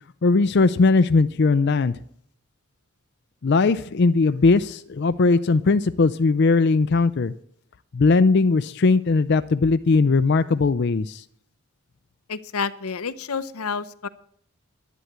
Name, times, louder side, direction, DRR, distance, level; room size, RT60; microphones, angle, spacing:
voice 1, 0.2-2.0 3.4-7.3 7.9-11.2, left 3 dB, 50° left, 12 dB, 0.4 m, -19 dB
voice 2, 12.3-14.1, left 5 dB, 90° left, 14 dB, 0.8 m, -29 dB
11.0 x 10.0 x 8.0 m, 0.65 s
head